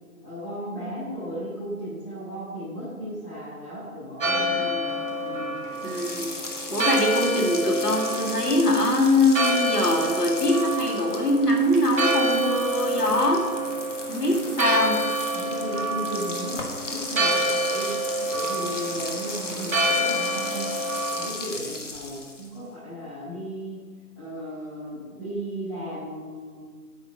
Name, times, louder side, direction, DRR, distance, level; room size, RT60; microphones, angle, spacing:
voice 1, 0.2-5.7 15.3-17.9 18.3-20.7 21.1-23.8 24.1-26.7, equal, 15° left, -13 dB, 2.6 m, -35 dB
Church bell, 4.2-21.3, right 1 dB, 55° right, 2.2 m, -28 dB
voice 2, 4.5-5.0 5.8-6.4 6.7-13.6 14.1-15.1, left 1 dB, 90° left, -1 dB, 2.4 m, -23 dB
sound 1, 5.7-22.6, left 2 dB, 50° left, 1.4 m, -36 dB
8.9 x 5.6 x 6.5 m, 1.5 s
figure-of-eight pair, 160°, 46 cm